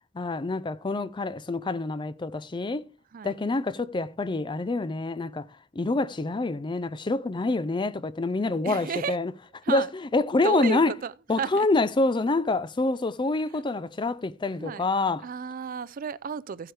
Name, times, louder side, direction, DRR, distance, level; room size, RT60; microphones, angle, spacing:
voice 1, 0.1-2.8 3.2-5.5 5.7-9.3 9.7-10.9 11.3-15.3, left 3 dB, 25° left, 0.4 m, -26 dB
voice 2, 8.6-9.2 9.6-9.9 10.4-11.7 14.6-14.9 15.2-16.7, right 6 dB, 45° right, 0.4 m, -33 dB
15.0 x 7.9 x 3.3 m
head